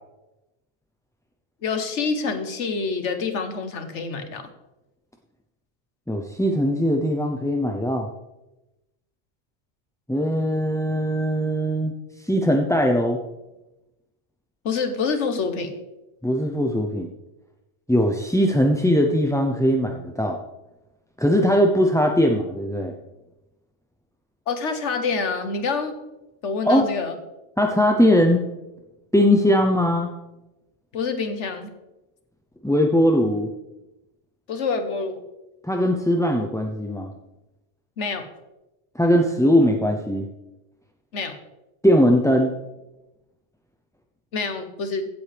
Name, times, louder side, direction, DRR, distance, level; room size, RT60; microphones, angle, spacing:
voice 1, 1.6-4.5 14.6-15.8 24.5-25.9 26.4-27.1 30.9-31.7 34.5-35.2 38.0-38.3 41.1-41.3 44.3-45.1, left 4 dB, 90° left, 7 dB, 1.4 m, -27 dB
voice 2, 6.1-8.1 10.1-11.9 12.2-13.2 16.2-17.1 17.9-20.4 21.2-22.9 26.7-26.9 27.6-28.4 29.1-30.1 32.6-33.5 35.6-37.1 39.0-40.3 41.8-42.5, equal, 5° left, 2 dB, 0.4 m, -20 dB
16.0 x 7.8 x 3.4 m, 0.99 s
omnidirectional pair, 1.2 m